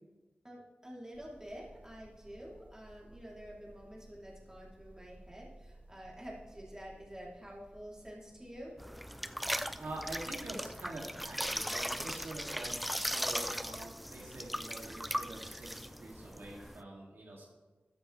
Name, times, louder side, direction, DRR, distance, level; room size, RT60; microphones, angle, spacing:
voice 1, 0.4-8.8, equal, 15° right, -4 dB, 3.4 m, -48 dB
sound 1, 1.1-16.7, right 1 dB, 45° right, 2.8 m, -59 dB
sound 2, 8.8-16.8, equal, ahead, 0.4 m, -38 dB
voice 2, 9.8-17.4, right 1 dB, 80° right, -3 dB, 2.7 m, -46 dB
14.0 x 10.0 x 3.4 m, 1.2 s
wide cardioid pair, 60°, 4 cm